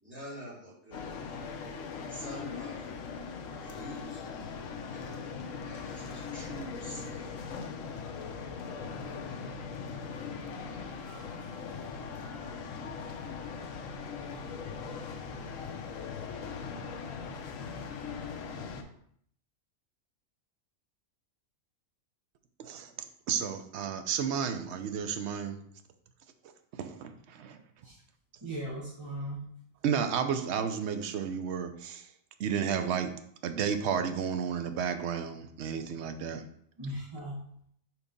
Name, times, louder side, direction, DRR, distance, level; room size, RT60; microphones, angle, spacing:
voice 1, 0.0-1.3 2.1-3.1 3.6-4.4 4.9-5.3 5.6-7.3, equal, 10° right, -8 dB, 2.6 m, -46 dB
sound 1, 0.9-18.8, left 5 dB, 75° left, 1.1 m, -40 dB
voice 2, 22.6-22.9 23.3-25.6 26.7-27.6 29.8-32.1 32.4-33.2 33.4-36.4, right 7 dB, 65° right, 8 dB, 0.8 m, -32 dB
voice 3, 28.4-29.5 36.8-37.4, right 1 dB, 25° right, -5 dB, 0.9 m, -38 dB
4.6 x 4.0 x 5.1 m, 0.67 s
omnidirectional pair, 1.4 m